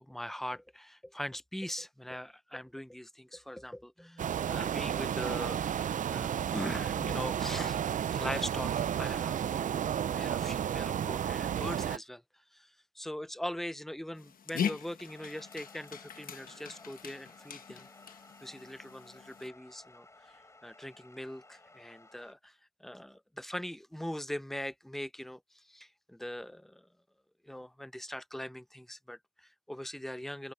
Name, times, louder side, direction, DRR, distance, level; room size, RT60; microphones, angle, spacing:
voice 1, 0.0-5.6 6.1-7.8 8.1-12.2 12.5-12.7 13.0-17.9 18.4-20.3 20.6-22.5 22.8-26.9 27.4-30.5, left 1 dB, ahead, 0.6 m, -41 dB
sound 1, 4.2-12.0, right 9 dB, 60° right, 0.4 m, -32 dB
Dog, 14.2-19.5, left 8 dB, 75° left, 1.1 m, -40 dB
sound 2, 15.1-22.3, left 2 dB, 20° left, 4.2 m, -57 dB
wide cardioid pair, 130°, 15 cm